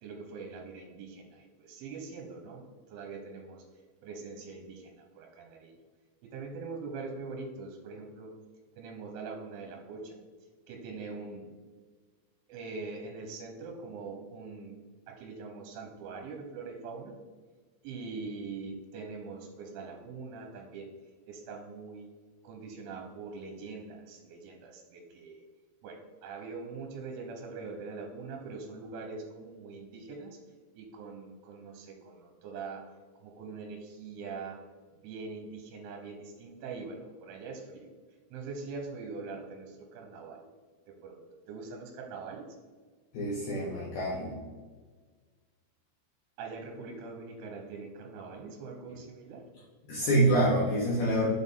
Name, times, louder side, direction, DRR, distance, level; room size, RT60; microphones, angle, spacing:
voice 1, 0.0-3.6 4.0-5.7 6.2-8.3 8.8-10.2 10.7-11.5 12.5-14.8 15.1-17.2 17.8-20.9 21.3-22.1 22.4-25.4 25.8-30.4 30.7-32.9 33.2-34.6 35.0-37.9 38.3-40.5 41.0-41.2 41.5-42.6 46.4-49.5, right 4 dB, 85° right, 1 dB, 3.2 m, -43 dB
voice 2, 43.1-44.4 49.9-51.3, right 1 dB, 75° left, -5 dB, 2.2 m, -26 dB
7.0 x 4.3 x 3.5 m, 1.5 s
omnidirectional pair, 5.6 m